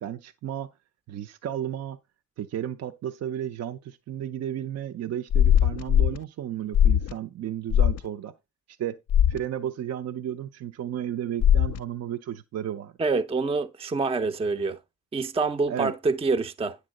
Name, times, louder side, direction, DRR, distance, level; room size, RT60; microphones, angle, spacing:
voice 1, 0.0-0.7 1.1-2.0 2.4-8.3 8.7-9.0 9.3-12.9 15.7-15.9, right 10 dB, 55° right, 0.6 m, -33 dB
sound 1, 5.3-6.2 6.7-7.1 7.7-8.0 9.1-9.4 11.4-11.8, left 10 dB, 55° left, 0.5 m, -20 dB
voice 2, 13.0-14.8 15.1-16.8, right 4 dB, 20° right, 0.6 m, -26 dB
9.7 x 3.6 x 6.4 m
cardioid pair, 90°, 30 cm